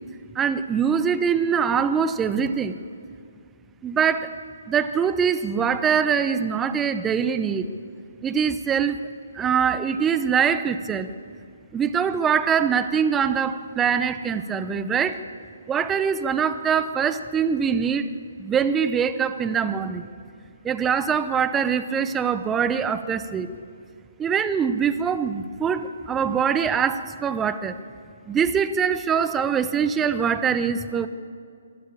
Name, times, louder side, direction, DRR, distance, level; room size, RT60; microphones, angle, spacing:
voice 1, 0.3-2.8 3.8-4.3 4.7-7.7 8.2-9.0 9.3-11.1 11.7-15.2 15.7-18.1 18.4-20.1 20.6-23.5 24.2-27.8 28.3-31.1, right 7 dB, 15° right, 12 dB, 0.8 m, -23 dB
25.0 x 13.0 x 8.7 m, 2.3 s
figure-of-eight pair, 135°, 0 cm